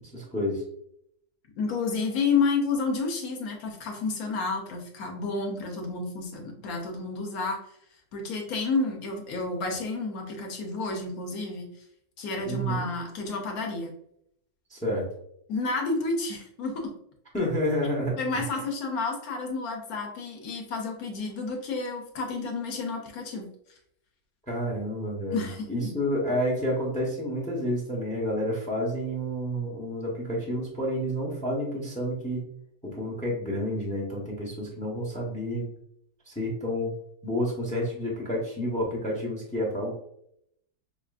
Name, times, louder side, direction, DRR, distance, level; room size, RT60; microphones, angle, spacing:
voice 1, 0.1-0.6 12.4-12.8 14.7-15.0 17.3-18.5 24.5-32.5 32.8-35.7 36.3-36.9 37.2-39.9, equal, 10° left, -2 dB, 0.5 m, -29 dB
voice 2, 1.6-7.6 8.1-11.7 12.2-14.0 15.5-16.9 18.2-23.5 25.3-25.9, left 4 dB, 65° left, 2 dB, 1.1 m, -30 dB
5.7 x 2.4 x 2.4 m, 0.71 s
omnidirectional pair, 1.9 m